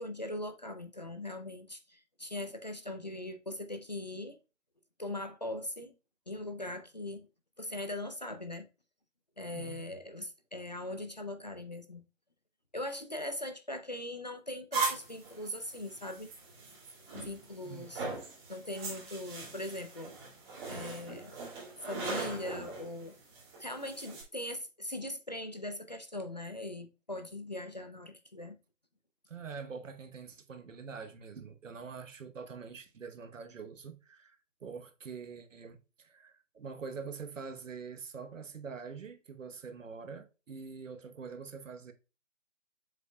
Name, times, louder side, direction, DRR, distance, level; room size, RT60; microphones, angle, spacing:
voice 1, 0.0-4.4 5.0-5.9 6.3-7.3 7.6-8.7 9.4-12.0 12.7-16.3 17.1-18.0 18.5-20.2 20.7-21.3 21.8-23.1 23.6-28.6, left 1 dB, 35° left, 0.5 m, -40 dB
sound 1, 14.7-24.2, right 4 dB, 20° right, 2.5 m, -40 dB
voice 2, 17.6-18.0 29.3-34.4 34.6-41.9, right 5 dB, 75° right, 1.1 m, -45 dB
7.5 x 5.6 x 2.2 m
hypercardioid pair, 165°, 39 cm